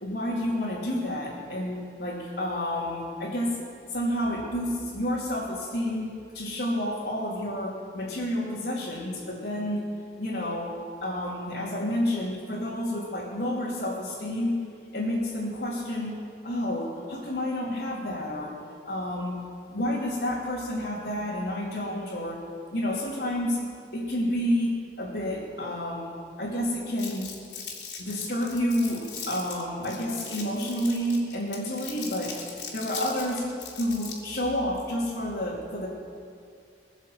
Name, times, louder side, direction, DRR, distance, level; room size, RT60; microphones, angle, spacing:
voice 1, 0.0-3.6 3.9-9.9 10.2-14.6 14.9-18.6 18.8-19.4 19.7-22.4 22.7-23.6 23.9-27.3 28.0-32.3 32.7-33.5 33.7-35.9, left 1 dB, 60° left, -9 dB, 2.8 m, -30 dB
Crumpling crinkling, 27.0-34.3, left 6 dB, 80° left, 3.1 m, -39 dB
21.5 x 7.3 x 7.7 m, 2.2 s
head